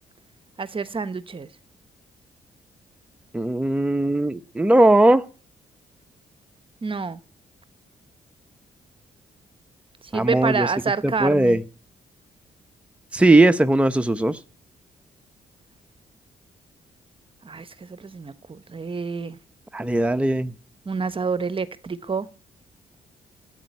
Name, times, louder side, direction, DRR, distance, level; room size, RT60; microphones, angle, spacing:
voice 1, 0.6-1.5 6.8-7.2 10.0-11.6 17.4-19.4 20.8-22.3, right 5 dB, 35° right, 1.1 m, -28 dB
voice 2, 3.3-5.2 10.1-10.7 11.0-11.6 13.1-14.4 19.7-20.5, right 1 dB, 5° right, 0.9 m, -18 dB
13.5 x 9.0 x 9.7 m
cardioid pair, 85°, 16 cm